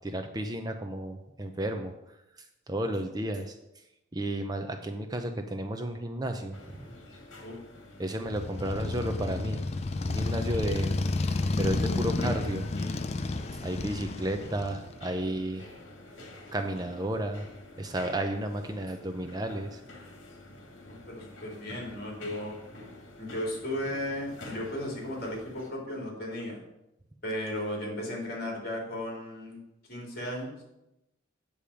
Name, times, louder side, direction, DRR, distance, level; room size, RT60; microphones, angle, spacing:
voice 1, 0.0-1.9 2.7-3.6 4.1-6.6 8.0-11.0 11.3-12.6 13.6-15.7 16.5-17.5 17.8-19.8, right 1 dB, 20° right, 6 dB, 0.5 m, -32 dB
sound 1, 6.5-25.7, left 1 dB, 70° left, 2.0 m, -48 dB
Motorcycle, 8.3-15.0, left 2 dB, 30° left, 0.4 m, -31 dB
voice 2, 20.9-22.6 23.2-26.6 27.2-29.6 29.9-30.6, left 1 dB, 50° left, -1 dB, 3.1 m, -35 dB
8.5 x 7.0 x 4.9 m, 0.90 s
head